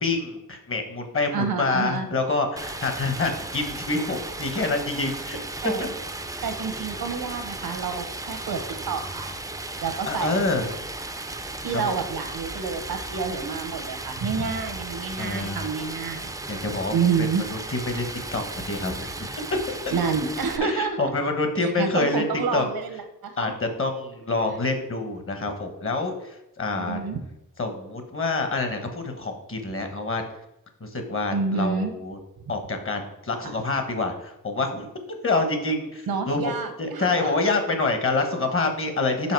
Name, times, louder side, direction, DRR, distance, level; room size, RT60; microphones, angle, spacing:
voice 1, 0.0-5.4 10.1-10.7 11.7-12.0 15.2-15.6 16.5-16.9 17.5-19.3 19.7-19.8 20.6-22.2 22.5-22.6 23.4-27.0 27.6-30.2 30.8-32.2 32.5-34.9 35.2-36.5 36.8-39.3, left 3 dB, 35° left, 6 dB, 1.1 m, -27 dB
voice 2, 1.3-2.1 5.6-5.9 6.4-9.3 9.8-10.5 11.6-16.3 16.9-17.4 19.9-21.1 21.6-23.5 26.7-27.2 31.3-31.9 33.4-33.5 36.1-37.4, right 5 dB, 85° right, 7 dB, 1.0 m, -28 dB
Stream, 2.6-20.6, right 2 dB, 10° right, 0.4 m, -35 dB
5.6 x 5.0 x 4.6 m, 0.85 s
wide cardioid pair, 105°, 36 cm